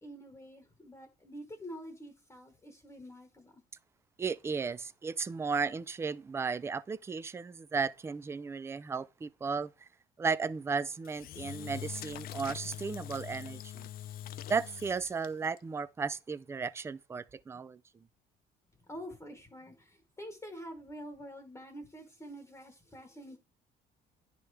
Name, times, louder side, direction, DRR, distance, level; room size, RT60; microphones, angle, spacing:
voice 1, 0.0-3.6 18.8-23.4, equal, 15° left, 1.2 m, -47 dB
voice 2, 4.2-9.9 10.2-13.9 14.5-17.8, right 5 dB, 15° right, 0.3 m, -35 dB
Engine / Drill, 11.0-15.6, left 12 dB, 60° left, 0.5 m, -43 dB
9.9 x 3.4 x 4.7 m
cardioid pair, 110°, 17 cm